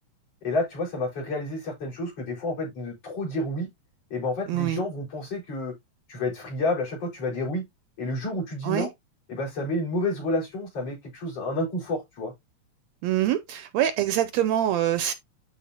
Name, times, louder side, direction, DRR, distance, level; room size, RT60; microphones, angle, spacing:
voice 1, 0.4-3.7 4.1-5.7 6.1-7.6 8.0-8.9 9.3-12.3, left 2 dB, 50° left, 5.9 m, -29 dB
voice 2, 4.5-4.8 8.6-8.9 13.0-15.1, right 12 dB, 80° right, 1.7 m, -25 dB
12.5 x 4.4 x 2.8 m
omnidirectional pair, 3.4 m